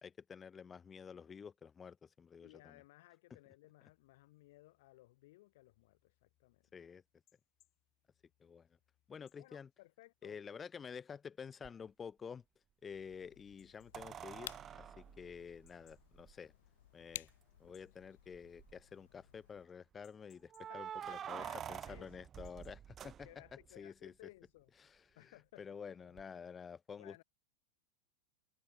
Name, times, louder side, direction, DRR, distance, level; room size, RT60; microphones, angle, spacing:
voice 1, 0.0-2.8 3.3-3.4 6.7-7.0 8.4-8.7 9.1-9.7 10.2-12.4 12.8-16.5 16.9-17.3 17.6-24.1 24.8-27.2, left 6 dB, 15° left, 1.1 m, -50 dB
voice 2, 2.4-6.7 9.4-10.4 20.7-22.3 23.2-24.7 25.1-26.2 27.0-27.2, left 19 dB, 60° left, 1.5 m, -61 dB
sound 1, 3.9-23.4, left 15 dB, 30° left, 5.6 m, -80 dB
sound 2, 11.6-11.7 13.9-16.3 17.3-17.4 17.7-17.8 18.3-18.8 20.5-23.7 26.2-26.3, right 9 dB, 20° right, 0.4 m, -47 dB
sound 3, 12.9-19.7, left 13 dB, 80° left, 0.6 m, -55 dB
supercardioid pair, 160°, 0 cm